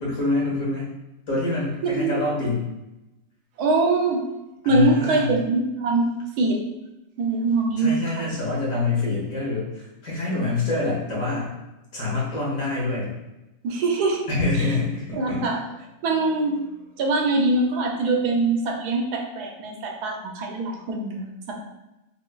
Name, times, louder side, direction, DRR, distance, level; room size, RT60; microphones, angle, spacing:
voice 1, 0.0-0.9 1.3-2.7 4.6-5.3 7.8-11.5 11.9-13.1 14.3-15.5, left 3 dB, 60° left, -5 dB, 1.8 m, -26 dB
voice 2, 3.6-4.2 4.6-6.1 6.4-6.6 7.2-8.3 13.6-14.3 15.1-15.6 16.0-16.6 17.0-21.6, right 3 dB, 85° right, 1 dB, 1.2 m, -23 dB
4.8 x 3.3 x 2.3 m, 0.95 s
omnidirectional pair, 1.7 m